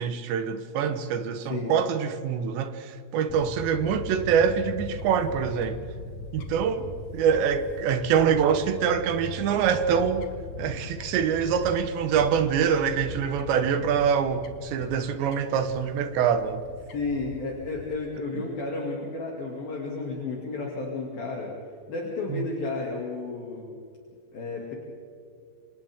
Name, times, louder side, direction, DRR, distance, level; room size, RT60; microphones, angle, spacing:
voice 1, 0.0-5.8 6.3-10.3 10.6-16.6 22.3-22.5, right 7 dB, 75° right, 3.2 m, -25 dB
voice 2, 1.4-1.7 14.8-14.9 16.9-21.5 21.9-23.7 24.3-24.8, left 3 dB, 55° left, 3.9 m, -32 dB
Fowl / Bird, 3.3-17.9, left 3 dB, 75° left, 1.7 m, -40 dB
29.5 x 27.0 x 3.6 m
omnidirectional pair, 5.4 m